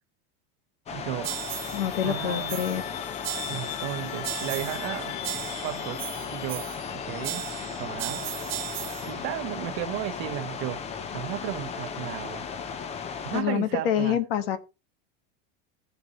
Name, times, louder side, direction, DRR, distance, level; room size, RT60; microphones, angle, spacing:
sound 1, 0.9-13.4, left 6 dB, 20° left, 0.8 m, -36 dB
voice 1, 0.9-1.3 2.0-2.7 3.5-5.2 5.6-7.5 7.8-8.3 9.0-10.8 11.1-12.4 13.2-14.2, right 14 dB, 50° right, 1.0 m, -34 dB
sound 2, 1.2-1.9 2.5-2.9 3.2-3.9 4.2-4.9 5.2-6.9 7.2-9.1, right 19 dB, 80° right, 0.7 m, -36 dB
sound 3, 1.3-7.8, left 15 dB, 65° left, 0.7 m, -40 dB
voice 2, 1.7-2.8 13.3-14.6, left 10 dB, 80° left, 1.6 m, -26 dB
16.0 x 6.8 x 3.1 m
supercardioid pair, 155°, 29 cm